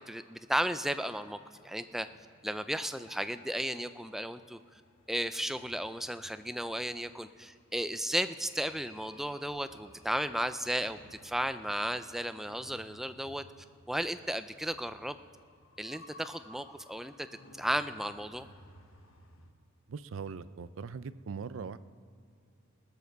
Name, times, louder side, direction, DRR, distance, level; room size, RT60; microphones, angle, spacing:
voice 1, 0.1-2.1 2.4-4.6 5.1-13.4 13.9-15.2 15.8-17.3 17.6-18.5, equal, ahead, 11 dB, 0.4 m, -34 dB
sound 1, 0.8-19.5, left 1 dB, 80° left, 1.2 m, -58 dB
voice 2, 19.9-21.8, right 5 dB, 70° right, 15 dB, 0.5 m, -40 dB
20.0 x 7.2 x 6.6 m, 2.4 s
head